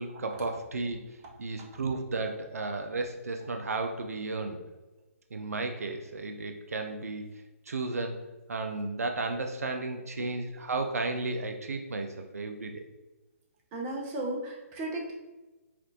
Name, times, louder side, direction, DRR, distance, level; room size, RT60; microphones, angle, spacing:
voice 1, 0.0-4.6 5.3-7.3 7.7-12.9, right 3 dB, 80° right, 5 dB, 0.4 m, -34 dB
voice 2, 13.7-15.1, right 1 dB, 25° right, -2 dB, 0.8 m, -35 dB
4.2 x 2.5 x 2.6 m, 1.1 s
figure-of-eight pair, 140°, 8 cm